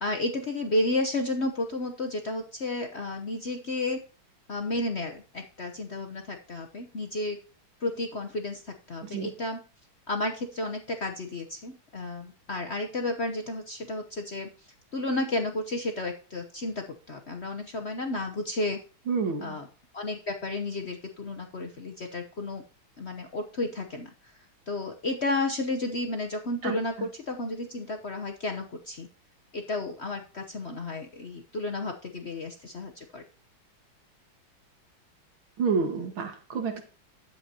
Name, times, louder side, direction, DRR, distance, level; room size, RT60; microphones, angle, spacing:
voice 1, 0.0-4.0 4.5-7.4 7.8-9.6 10.1-18.8 19.4-19.7 19.9-22.6 23.0-24.4 24.7-29.1 29.5-33.2, left 2 dB, 55° left, 3 dB, 0.8 m, -32 dB
voice 2, 19.1-19.6 26.6-26.8 35.6-36.8, right 5 dB, 75° right, 5 dB, 2.4 m, -29 dB
11.0 x 7.9 x 2.9 m, 0.36 s
omnidirectional pair, 2.3 m